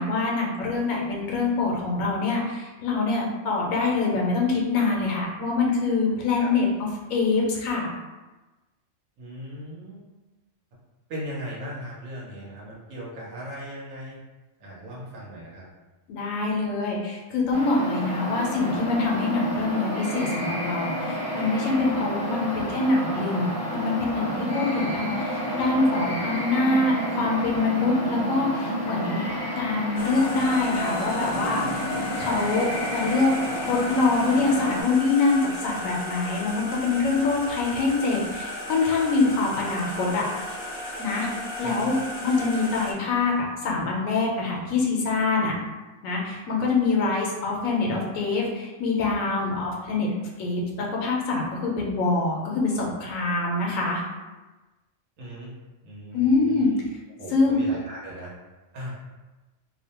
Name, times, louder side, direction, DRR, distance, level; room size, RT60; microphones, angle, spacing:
voice 1, 0.0-7.9 16.1-29.2 29.6-31.8 32.2-33.3 33.6-40.3 41.0-41.3 41.6-41.9 42.2-45.5 46.0-50.1 50.4-54.0 56.1-56.7 57.3-57.6, left 3 dB, 90° left, -2 dB, 1.0 m, -25 dB
voice 2, 9.2-10.1 11.1-14.2 14.6-15.7 41.6-41.9 55.2-55.6 55.8-56.8 57.2-58.3 58.7-59.0, equal, 80° right, -5 dB, 1.2 m, -38 dB
sound 1, 17.5-34.8, equal, 20° right, 0.7 m, -30 dB
sound 2, 30.0-42.9, left 2 dB, 60° left, 0.5 m, -35 dB
2.7 x 2.1 x 2.8 m, 1.2 s
omnidirectional pair, 1.3 m